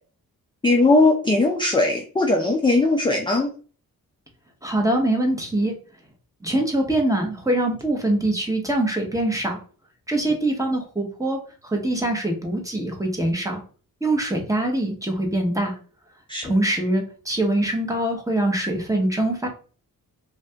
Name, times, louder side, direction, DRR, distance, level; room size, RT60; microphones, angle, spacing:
voice 1, 0.6-3.5 16.3-16.5, left 2 dB, 15° left, 1 dB, 0.4 m, -19 dB
voice 2, 4.6-5.8 6.4-9.6 10.1-13.6 14.0-15.8 16.4-19.5, right 1 dB, 10° right, 1 dB, 0.9 m, -23 dB
2.7 x 2.4 x 3.3 m, 0.39 s
cardioid pair, 95°, 34 cm